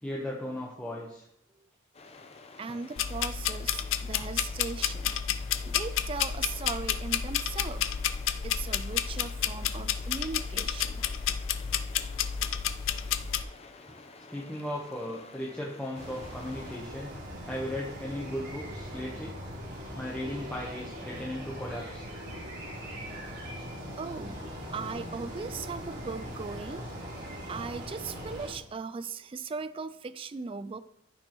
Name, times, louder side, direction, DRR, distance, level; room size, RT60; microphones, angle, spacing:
voice 1, 0.0-1.3 14.3-17.1 17.5-19.3 19.9-22.1, left 1 dB, 5° left, -3 dB, 0.9 m, -36 dB
sound 1, 1.9-16.8, left 3 dB, 30° left, 0.6 m, -51 dB
voice 2, 2.6-5.2 5.7-7.9 8.4-11.1 24.0-24.4 24.7-30.8, right 4 dB, 25° right, 12 dB, 0.3 m, -38 dB
sound 2, 3.0-13.4, left 9 dB, 70° left, 0.5 m, -31 dB
sound 3, 15.9-28.5, equal, 50° right, 3.7 m, -41 dB
13.0 x 5.3 x 3.0 m, 0.78 s
head